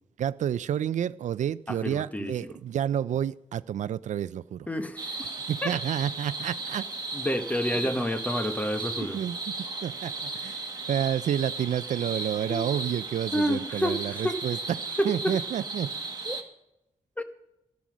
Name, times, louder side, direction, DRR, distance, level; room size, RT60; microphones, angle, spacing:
voice 1, 0.2-4.7 5.5-6.9 9.1-9.4 9.8-14.6 15.0-15.9, right 9 dB, 90° right, 0.4 m, -29 dB
voice 2, 1.7-2.5 4.7-5.3 5.6-5.7 7.1-9.2 12.5-12.6 13.3-14.4 15.0-15.3 16.3-16.4 17.2-17.3, equal, 10° left, 1.1 m, -29 dB
sound 1, 5.0-16.4, right 3 dB, 35° right, 1.5 m, -35 dB
14.5 x 10.5 x 6.2 m
wide cardioid pair, 120°, 12 cm